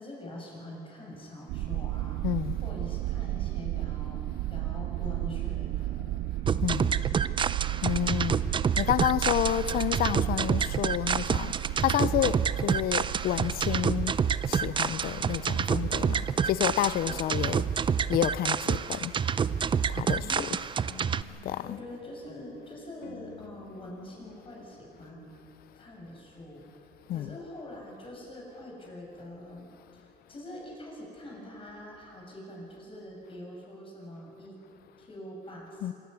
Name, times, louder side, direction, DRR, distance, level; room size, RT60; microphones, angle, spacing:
voice 1, 0.0-2.2 2.6-4.2 4.5-6.2 6.8-7.4 20.1-20.5 21.3-25.3 25.7-34.6 35.0-35.9, left 1 dB, 30° left, 7.0 m, -44 dB
sound 1, 1.5-21.1, right 16 dB, 80° right, 0.6 m, -35 dB
voice 2, 2.2-2.6 6.6-7.0 7.8-8.4 8.8-14.1 14.5-19.1 19.9-20.5 21.4-21.8 27.1-27.4 35.8-35.9, left 12 dB, 65° left, 0.6 m, -30 dB
sound 2, 6.5-21.2, right 7 dB, 30° right, 0.5 m, -28 dB
sound 3, 20.8-26.0, left 10 dB, 90° left, 1.2 m, -53 dB
25.5 x 14.0 x 9.5 m
cardioid pair, 110°, 17 cm